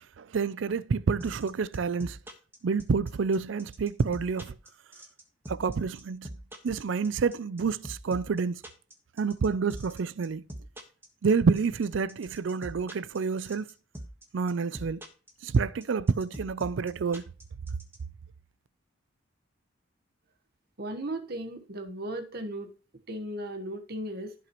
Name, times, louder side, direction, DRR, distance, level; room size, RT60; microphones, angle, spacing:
voice 1, 0.2-2.2 2.6-4.5 5.5-6.3 6.6-8.6 9.2-10.4 11.2-13.6 14.3-15.0 15.4-17.2, right 5 dB, 70° right, 0.4 m, -28 dB
sound 1, 1.2-18.0, right 1 dB, 10° right, 1.5 m, -42 dB
voice 2, 20.8-22.7 23.1-24.3, right 1 dB, 50° right, 1.3 m, -36 dB
15.5 x 6.0 x 3.1 m
head